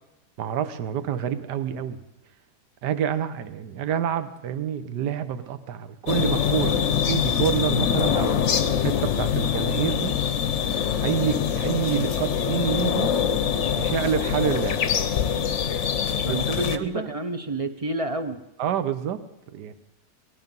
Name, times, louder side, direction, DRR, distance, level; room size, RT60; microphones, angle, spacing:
voice 1, 0.4-2.0 2.8-8.4 8.8-10.2 11.0-13.1 13.8-14.9 16.3-16.4 16.7-17.1 18.6-19.2 19.5-19.7, right 9 dB, 70° right, 11 dB, 1.5 m, -27 dB
sound 1, 6.1-16.8, left 8 dB, 50° left, 0.9 m, -24 dB
voice 2, 16.2-18.4, right 2 dB, 35° right, 9 dB, 0.5 m, -29 dB
19.5 x 13.5 x 5.4 m, 0.89 s
omnidirectional pair, 1.9 m